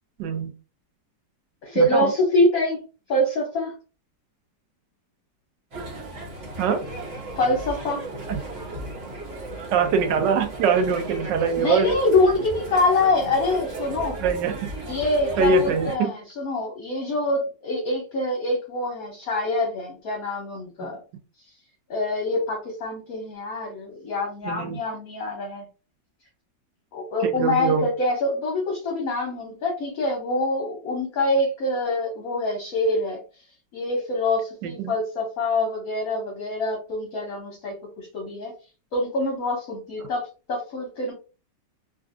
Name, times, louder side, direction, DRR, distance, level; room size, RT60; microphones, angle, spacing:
voice 1, 0.2-0.5 1.7-2.1 6.6-6.8 8.3-8.4 9.7-11.9 14.2-14.7 15.4-16.1 20.8-20.9 24.4-24.8 27.2-27.9 34.6-34.9, right 5 dB, 80° right, 7 dB, 1.3 m, -23 dB
voice 2, 1.6-2.8 3.1-3.7 7.4-8.0 11.6-14.2 14.8-21.0 21.9-25.6 26.9-33.2 33.7-38.5 38.9-41.1, left 2 dB, 60° left, 0 dB, 1.2 m, -25 dB
sound 1, 5.7-16.0, right 1 dB, 40° right, 1.3 m, -35 dB
3.3 x 2.5 x 2.4 m, 0.33 s
omnidirectional pair, 1.9 m